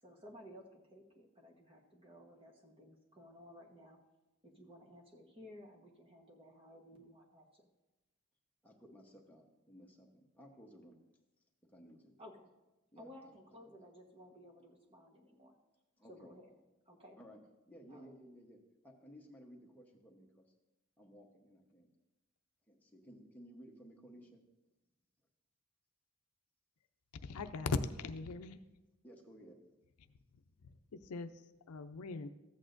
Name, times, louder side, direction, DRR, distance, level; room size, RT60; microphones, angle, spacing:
voice 1, 0.0-4.0 4.4-7.7 12.2-12.5 13.0-15.5 16.1-16.5 16.8-17.2 17.9-18.1, equal, 25° right, 0 dB, 1.2 m, -56 dB
voice 2, 8.6-11.0 11.6-12.1 12.9-13.3 16.0-16.3 17.2-17.4 17.7-20.4 21.0-21.9 22.7-24.4 29.0-29.6, equal, 10° left, 0 dB, 1.0 m, -57 dB
voice 3, 27.2-28.6 30.6-32.3, left 4 dB, 85° left, 10 dB, 0.5 m, -40 dB
14.0 x 8.4 x 2.6 m, 1.0 s
head